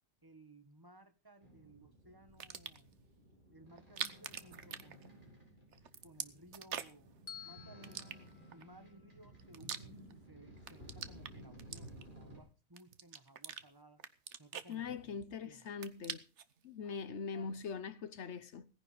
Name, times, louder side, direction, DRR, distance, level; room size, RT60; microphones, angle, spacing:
voice 1, 0.2-2.9 3.5-5.4 6.0-7.1 7.4-8.3 8.5-14.0 14.4-15.7 17.2-17.6, right 1 dB, 15° right, 1.3 m, -59 dB
sound 1, 1.4-12.4, equal, 35° right, 6.5 m, -56 dB
sound 2, 2.3-2.9 3.8-5.4 5.7-7.1 7.8-8.6 9.2-10.3 10.6-12.3 12.8-13.6 14.0-15.3 15.6-16.5, right 8 dB, 60° right, 1.2 m, -45 dB
Bell, 7.3-9.5, left 8 dB, 40° left, 0.8 m, -54 dB
voice 2, 14.7-16.2 16.6-18.7, left 5 dB, 60° left, 1.1 m, -42 dB
17.5 x 10.5 x 5.1 m
omnidirectional pair, 1.4 m